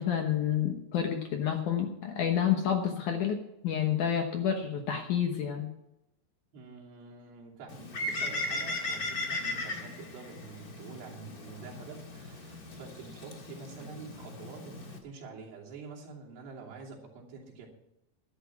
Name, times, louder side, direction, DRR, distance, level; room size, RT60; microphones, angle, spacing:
voice 1, 0.0-5.7, left 9 dB, 65° left, 4 dB, 2.1 m, -29 dB
voice 2, 6.5-17.7, right 4 dB, 80° right, -3 dB, 5.0 m, -47 dB
Bird, 7.7-15.0, left 2 dB, 40° left, 1.2 m, -37 dB
12.0 x 11.5 x 6.0 m, 0.86 s
omnidirectional pair, 4.8 m